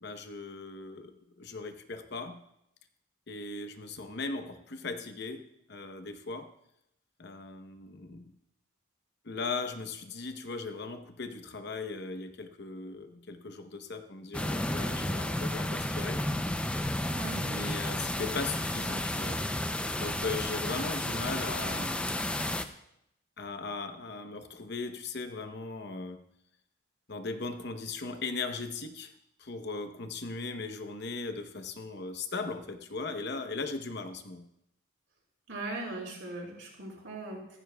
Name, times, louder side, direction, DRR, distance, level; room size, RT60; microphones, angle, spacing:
voice 1, 0.0-2.4 3.3-6.5 7.2-8.3 9.2-16.2 17.4-19.4 19.9-22.0 23.4-26.2 27.1-29.1 29.4-34.5, left 3 dB, 50° left, 8 dB, 0.9 m, -38 dB
sound 1, 14.3-22.6, left 1 dB, 5° left, 0.4 m, -32 dB
voice 2, 17.1-17.4 35.5-37.6, right 2 dB, 65° right, -2 dB, 4.7 m, -39 dB
15.0 x 14.5 x 2.3 m, 0.79 s
head